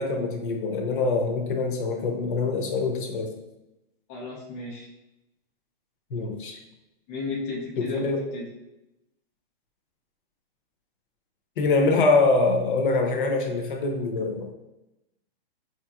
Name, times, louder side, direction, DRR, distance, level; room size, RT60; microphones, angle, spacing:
voice 1, 0.0-3.3 6.1-6.6 7.8-8.2 11.6-14.5, left 3 dB, 55° left, 3 dB, 0.8 m, -24 dB
voice 2, 4.1-4.9 7.1-8.5, left 3 dB, 20° left, -4 dB, 0.4 m, -34 dB
5.0 x 3.0 x 2.4 m, 0.94 s
hypercardioid pair, 160°, 30 cm